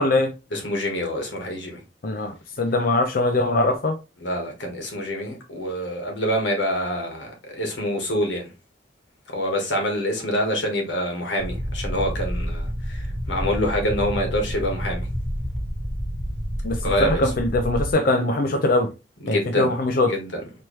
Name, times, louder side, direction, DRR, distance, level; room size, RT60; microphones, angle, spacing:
voice 1, 0.0-0.3 2.0-4.0 16.6-18.9 19.3-20.2, left 2 dB, 50° left, 0.5 m, -22 dB
voice 2, 0.5-1.8 4.2-8.5 9.3-15.1 16.8-17.2 19.2-19.7 20.0-20.3, equal, 85° left, 1.5 m, -26 dB
sound 1, 11.4-17.9, equal, 5° right, 1.2 m, -29 dB
4.6 x 3.1 x 3.1 m
head